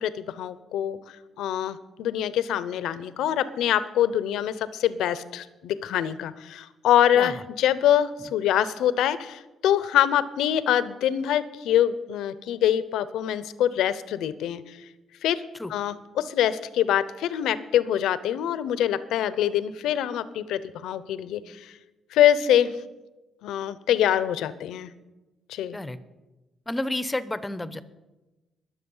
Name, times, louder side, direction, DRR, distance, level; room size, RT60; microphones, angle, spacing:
voice 1, 0.0-14.8 15.2-15.4 15.7-21.7 22.1-22.8 23.4-24.9 25.5-25.8, left 10 dB, 85° left, 15 dB, 0.7 m, -24 dB
voice 2, 26.7-27.8, left 1 dB, 15° left, 14 dB, 0.8 m, -30 dB
21.5 x 7.5 x 5.5 m, 1.1 s
cardioid pair, 90°, 0 cm